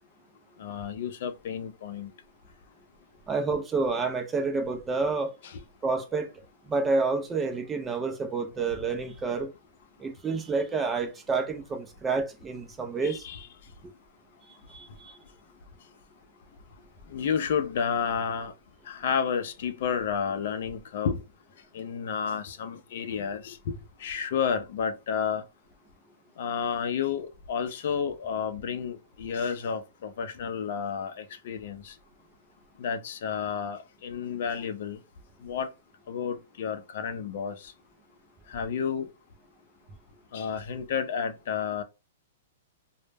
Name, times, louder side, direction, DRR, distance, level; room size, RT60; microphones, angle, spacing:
voice 1, 0.6-2.1 13.0-13.5 17.1-18.5 18.9-21.2 21.7-25.4 26.4-31.9 32.8-35.0 35.4-35.7 36.1-37.7 38.5-39.1 40.3-41.8, left 7 dB, 60° left, 0.4 m, -31 dB
voice 2, 3.3-5.3 5.8-6.3 6.7-9.5 10.0-13.2 14.7-15.1, right 4 dB, 10° right, 0.3 m, -29 dB
2.0 x 2.0 x 3.2 m
hypercardioid pair, 160°, 0 cm